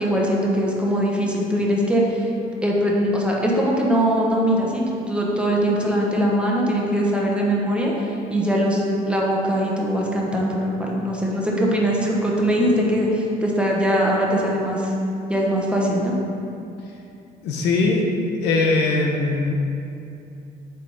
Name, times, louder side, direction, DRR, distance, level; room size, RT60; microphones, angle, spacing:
voice 1, 0.0-2.3 2.6-14.9 15.3-16.1, equal, 5° right, -3 dB, 1.1 m, -21 dB
voice 2, 17.4-18.0 18.4-19.6, left 3 dB, 85° left, 0 dB, 1.0 m, -20 dB
8.2 x 3.7 x 4.0 m, 2.7 s
cardioid pair, 110°, 17 cm